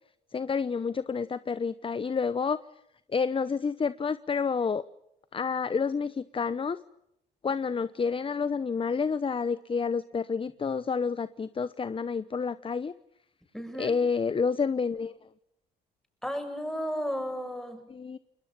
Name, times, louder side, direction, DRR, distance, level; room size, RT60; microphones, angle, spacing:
voice 1, 0.3-2.6 3.1-4.8 5.3-6.8 7.4-12.9 13.8-15.2 17.9-18.2, left 5 dB, 30° left, 15 dB, 0.9 m, -29 dB
voice 2, 13.5-14.0 16.2-17.9, equal, ahead, 6 dB, 7.3 m, -33 dB
29.0 x 21.0 x 7.4 m, 0.78 s
supercardioid pair, 65°, 19 cm